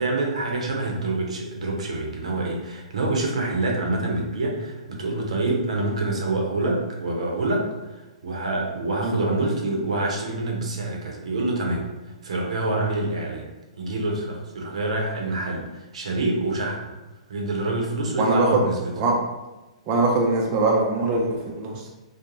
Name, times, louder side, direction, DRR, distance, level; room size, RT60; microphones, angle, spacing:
voice 1, 0.0-11.9 12.2-13.5 13.8-16.9 17.3-18.8, right 2 dB, 75° right, 0 dB, 0.6 m, -26 dB
voice 2, 18.2-18.7 19.0-19.1 19.9-21.9, right 2 dB, 35° right, -1 dB, 0.4 m, -22 dB
2.5 x 2.0 x 2.9 m, 1.1 s
hypercardioid pair, 130°, 4 cm